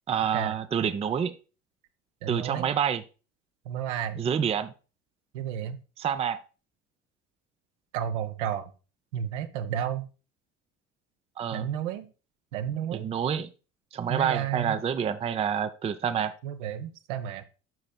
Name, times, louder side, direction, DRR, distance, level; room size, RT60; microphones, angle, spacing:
voice 1, 0.1-1.3 2.3-3.0 4.2-4.7 6.0-6.4 11.4-11.7 12.9-13.5 13.9-16.3, right 8 dB, 15° right, 0.5 m, -28 dB
voice 2, 2.2-2.7 3.7-4.2 5.3-5.8 7.9-8.7 9.1-10.1 11.5-12.1 12.5-13.1 14.1-14.8 16.4-17.4, right 9 dB, 65° right, 0.8 m, -32 dB
12.0 x 5.3 x 2.2 m
figure-of-eight pair, 55°, 38 cm